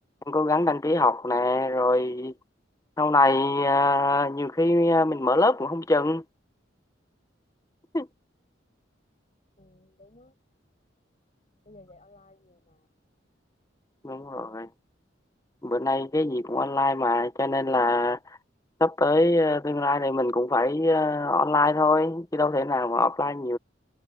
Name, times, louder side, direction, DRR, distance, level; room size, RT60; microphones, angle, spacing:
voice 1, 0.3-2.3 3.0-6.2 7.9-8.1 14.0-14.7 15.6-18.2 18.8-23.6, left 2 dB, 20° left, 0.8 m, -23 dB
voice 2, 9.6-10.3 11.6-12.9, left 2 dB, 35° left, 6.1 m, -54 dB
head